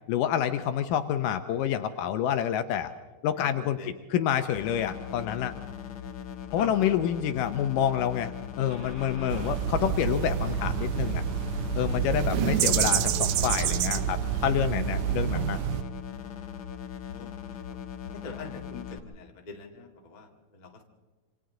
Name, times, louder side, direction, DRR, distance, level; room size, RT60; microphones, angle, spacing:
voice 1, 0.1-2.9 3.2-3.8 4.1-5.5 6.5-11.2 11.8-15.6, left 10 dB, 75° left, 9 dB, 2.1 m, -28 dB
voice 2, 3.4-4.1 5.2-5.3 6.3-7.0 17.1-17.8 18.1-20.8, left 3 dB, 25° left, 1 dB, 1.0 m, -44 dB
sound 1, 4.5-19.0, left 8 dB, 60° left, 2.0 m, -40 dB
Car / Engine starting, 8.7-14.1, right 3 dB, 30° right, 4.5 m, -37 dB
sound 2, 9.3-15.8, right 11 dB, 75° right, 1.8 m, -28 dB
27.5 x 26.5 x 3.8 m, 1.3 s
omnidirectional pair, 4.2 m